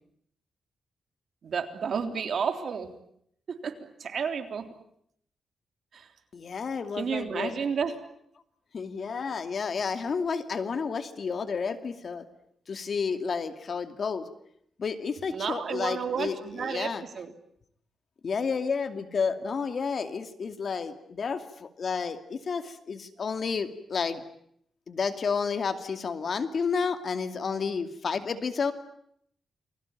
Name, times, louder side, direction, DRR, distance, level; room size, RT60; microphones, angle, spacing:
voice 1, 1.4-2.9 3.6-4.7 5.9-6.1 6.9-7.9 15.3-17.3, right 6 dB, 60° right, 7 dB, 3.5 m, -31 dB
voice 2, 6.3-7.5 8.7-12.3 12.7-14.2 14.8-17.0 18.2-24.2 24.9-28.7, left 5 dB, 50° left, 9 dB, 2.4 m, -31 dB
29.0 x 21.5 x 9.1 m, 0.70 s
cardioid pair, 115°, 0 cm